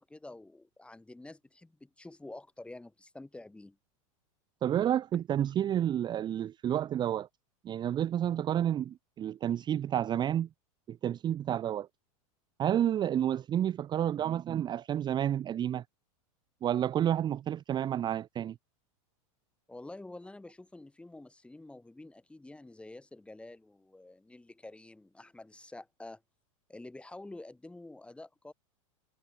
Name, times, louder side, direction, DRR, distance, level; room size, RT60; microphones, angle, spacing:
voice 1, 0.0-3.8 14.2-14.3 19.7-26.2 26.7-28.5, left 2 dB, 5° left, 3.5 m, -48 dB
voice 2, 4.6-7.3 7.6-10.5 10.9-11.9 12.6-15.8 16.6-18.6, right 10 dB, 25° right, 0.7 m, -30 dB
hypercardioid pair, 120°, 18 cm